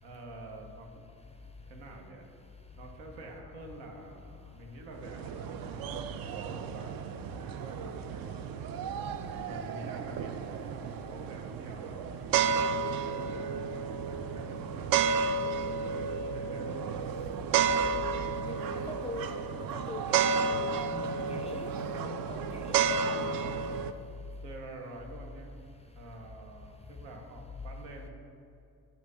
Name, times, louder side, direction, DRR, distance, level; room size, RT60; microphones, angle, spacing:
voice 1, 0.0-1.1 1.7-2.3 2.8-7.1 7.4-8.6 9.3-12.1 12.7-15.1 16.2-17.4 21.1-21.4 23.0-23.4 24.4-25.5 25.9-28.1, right 2 dB, 75° right, 1 dB, 1.0 m, -47 dB
sound 1, 4.9-23.9, right 6 dB, 50° right, 0.4 m, -32 dB
voice 2, 18.4-19.4 19.7-23.6, left 3 dB, 15° left, 4 dB, 0.4 m, -43 dB
7.8 x 2.8 x 4.9 m, 2.6 s
hypercardioid pair, 50°, 49 cm